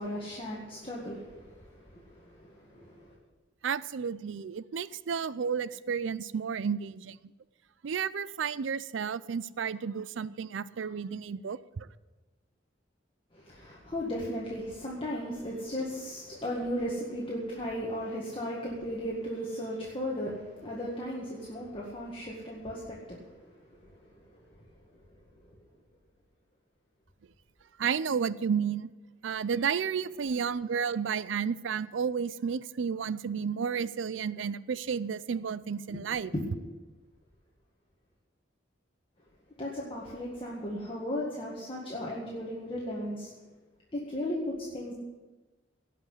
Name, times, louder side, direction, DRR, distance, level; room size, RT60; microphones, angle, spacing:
voice 1, 0.0-3.2 13.3-24.7 25.5-25.6 30.0-30.1 35.9-36.5 39.6-43.3 43.9-44.9, equal, 30° left, -4 dB, 1.9 m, -36 dB
voice 2, 3.6-7.2 7.8-11.9 27.8-28.9 29.2-36.3, right 6 dB, 80° right, 17 dB, 0.4 m, -32 dB
17.5 x 5.9 x 8.1 m, 1.2 s
head